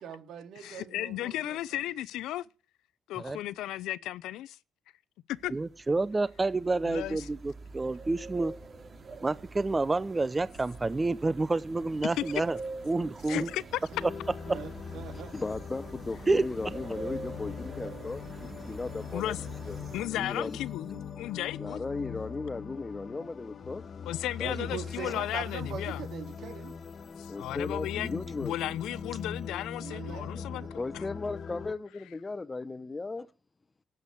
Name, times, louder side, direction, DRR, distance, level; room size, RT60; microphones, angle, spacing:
voice 1, 0.0-1.6 14.5-15.4 24.4-26.7 29.8-31.0, right 8 dB, 75° right, 2.7 m, -42 dB
voice 2, 0.6-2.4 3.1-4.6 5.3-5.5 6.8-7.3 12.2-12.3 13.3-13.8 19.1-19.4 19.9-21.8 24.0-26.1 27.2-30.6 30.9-31.1, left 14 dB, 90° left, 0.6 m, -35 dB
sound 1, 5.4-20.1, right 3 dB, 40° right, 2.8 m, -45 dB
voice 3, 5.5-8.5 9.2-12.6 12.9-13.5 16.3-16.4, right 3 dB, 20° right, 0.7 m, -29 dB
sound 2, 13.9-31.7, left 6 dB, 50° left, 1.7 m, -41 dB
voice 4, 15.3-19.3 19.7-19.8 20.2-20.6 21.5-23.8 24.4-24.6 25.0-25.2 27.3-28.5 30.0-30.2 30.8-33.3, left 3 dB, 25° left, 0.9 m, -36 dB
12.5 x 8.1 x 8.4 m
cardioid pair, 90°, 0 cm